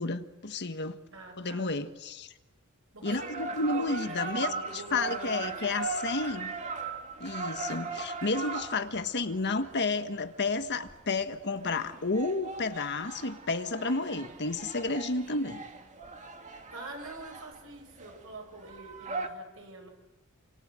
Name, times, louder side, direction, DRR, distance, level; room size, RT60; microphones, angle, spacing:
voice 1, 0.0-1.0 1.4-2.3 3.0-6.5 7.2-15.6, left 3 dB, 50° left, 1.4 m, -31 dB
voice 2, 1.1-1.7 2.9-6.0 16.7-19.9, right 2 dB, 65° right, 7.1 m, -45 dB
sound 1, 3.0-19.3, right 4 dB, 35° right, 2.3 m, -39 dB
28.5 x 26.5 x 7.7 m
head